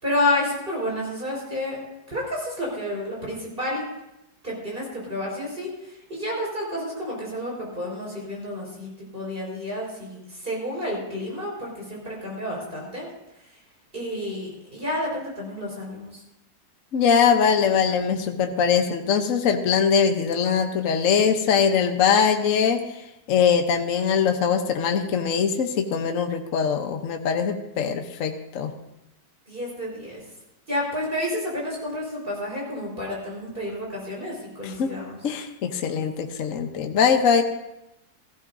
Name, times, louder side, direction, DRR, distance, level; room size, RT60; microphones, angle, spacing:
voice 1, 0.0-1.8 2.1-3.8 4.4-13.1 13.9-16.2 29.5-30.2 30.7-35.2, left 1 dB, 30° right, -3 dB, 4.9 m, -30 dB
voice 2, 16.9-22.8 23.3-28.7 34.6-34.9 35.2-37.4, left 6 dB, 55° left, 5 dB, 1.2 m, -22 dB
17.0 x 15.0 x 2.7 m, 0.89 s
omnidirectional pair, 1.9 m